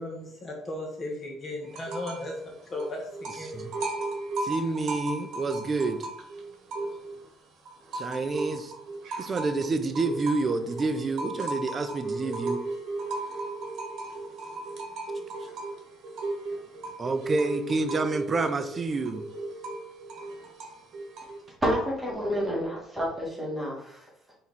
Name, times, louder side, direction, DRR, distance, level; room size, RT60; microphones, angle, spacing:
voice 1, 0.0-3.5, left 1 dB, 30° left, -1 dB, 1.4 m, -36 dB
sound 1, 1.7-2.3 2.6-7.3 7.6-21.5, right 2 dB, 60° right, 1.1 m, -36 dB
voice 2, 4.4-6.1 7.9-8.7 9.2-12.6 17.0-19.2, right 3 dB, 30° right, 8 dB, 0.5 m, -28 dB
voice 3, 21.6-24.0, equal, 10° right, -4 dB, 1.5 m, -29 dB
4.2 x 3.1 x 4.0 m, 0.72 s
cardioid pair, 115°, 0 cm